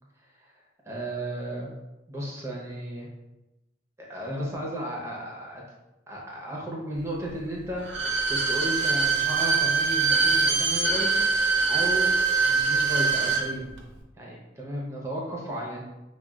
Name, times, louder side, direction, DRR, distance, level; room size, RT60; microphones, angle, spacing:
voice 1, 0.2-0.5 0.8-1.7 2.1-3.1 4.0-5.6 6.1-11.3 11.7-12.1 12.4-13.7 14.2-15.8, right 1 dB, 15° right, -2 dB, 0.8 m, -34 dB
Bowed string instrument, 7.8-13.5 13.8-13.9, right 4 dB, 75° right, 0.6 m, -23 dB
6.1 x 2.3 x 2.4 m, 1.0 s
head